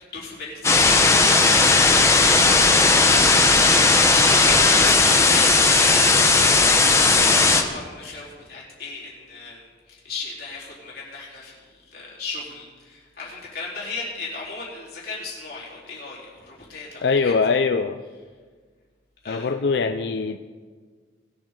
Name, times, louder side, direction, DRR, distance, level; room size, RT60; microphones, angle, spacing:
voice 1, 0.1-2.1 2.5-11.6 11.9-17.3 19.2-19.5, left 4 dB, 55° left, -6 dB, 4.0 m, -35 dB
sound 1, 0.6-7.6, left 3 dB, 15° left, 0.8 m, -16 dB
voice 2, 17.0-18.0 19.3-20.4, left 4 dB, 70° left, 8 dB, 0.4 m, -22 dB
20.5 x 7.9 x 3.9 m, 1.5 s
head